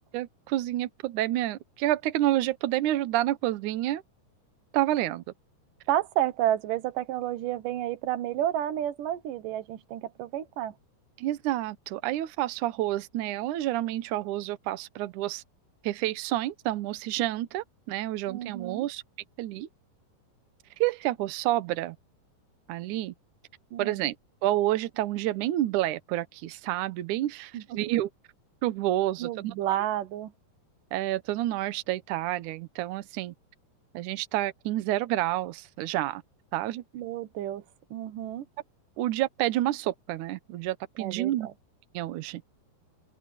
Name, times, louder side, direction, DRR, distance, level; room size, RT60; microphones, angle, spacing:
voice 1, 0.1-4.0 4.7-5.2 11.2-15.4 15.8-19.0 19.4-19.7 20.8-22.0 22.7-23.1 23.8-24.1 24.4-28.1 28.6-29.7 30.9-33.3 33.9-36.2 36.5-36.8 39.0-41.5 41.9-42.4, right 14 dB, 85° right, 1.7 m, -29 dB
voice 2, 5.9-10.7 18.3-18.9 23.7-24.0 27.5-27.8 29.2-30.3 36.9-37.6 37.9-38.4 41.0-41.5, right 12 dB, 65° right, 2.3 m, -31 dB
open air
omnidirectional pair, 4.9 m